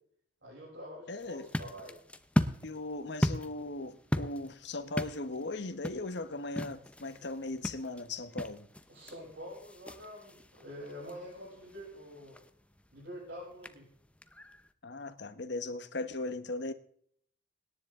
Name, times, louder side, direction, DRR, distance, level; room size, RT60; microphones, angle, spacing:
voice 1, 0.4-2.0 8.9-12.4 12.9-13.9, equal, 75° right, 7.4 m, -46 dB
voice 2, 1.1-1.5 2.6-8.7 14.8-16.7, left 2 dB, 65° left, 1.1 m, -38 dB
sound 1, 1.2-14.7, left 1 dB, 5° left, 0.7 m, -38 dB
25.0 x 10.5 x 3.7 m
head